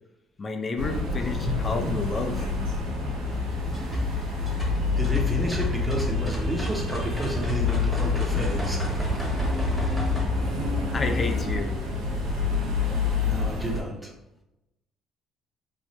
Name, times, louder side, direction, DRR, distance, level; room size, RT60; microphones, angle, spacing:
voice 1, 0.4-2.4 10.9-11.7, left 3 dB, 30° left, 5 dB, 0.4 m, -30 dB
sound 1, 0.8-13.8, left 4 dB, 85° right, 1.0 m, -27 dB
voice 2, 1.4-2.0 5.0-8.8 9.8-9.9 10.5-10.6 13.3-14.1, equal, 10° right, 0 dB, 0.7 m, -31 dB
sound 2, 3.2-10.3, right 2 dB, 10° left, 1.0 m, -32 dB
3.2 x 2.0 x 2.9 m, 0.91 s
supercardioid pair, 85°, 0 cm